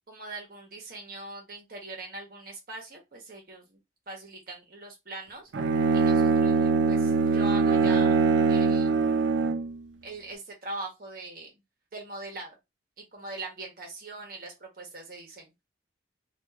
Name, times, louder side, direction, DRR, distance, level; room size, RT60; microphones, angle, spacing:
voice 1, 0.1-3.8 4.1-5.5 5.9-8.2 8.5-8.9 10.0-11.5 11.9-12.6 13.1-15.5, right 3 dB, 50° right, 1 dB, 1.0 m, -41 dB
Bowed string instrument, 5.5-9.7, right 4 dB, 70° right, 0.4 m, -23 dB
2.8 x 2.5 x 2.4 m, 0.22 s
head